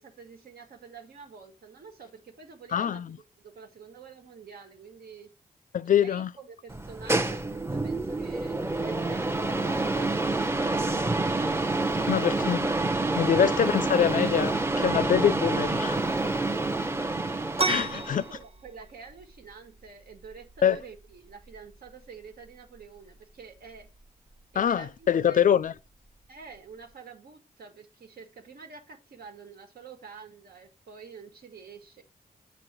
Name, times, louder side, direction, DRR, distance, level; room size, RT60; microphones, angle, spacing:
voice 1, 0.0-3.0 3.4-5.3 5.9-11.4 12.0-12.4 17.7-23.9 24.5-25.4 26.3-32.0, right 5 dB, 80° right, 1.8 m, -47 dB
voice 2, 2.7-3.2 5.7-6.3 12.1-12.7 13.2-16.1 17.6-18.2 20.6-20.8 24.5-25.7, left 9 dB, 60° left, 0.4 m, -24 dB
sound 1, 6.7-18.3, right 2 dB, 15° right, 0.7 m, -28 dB
sound 2, 17.5-26.9, right 3 dB, 40° right, 1.4 m, -38 dB
8.1 x 3.1 x 6.0 m
cardioid pair, 75°, 16 cm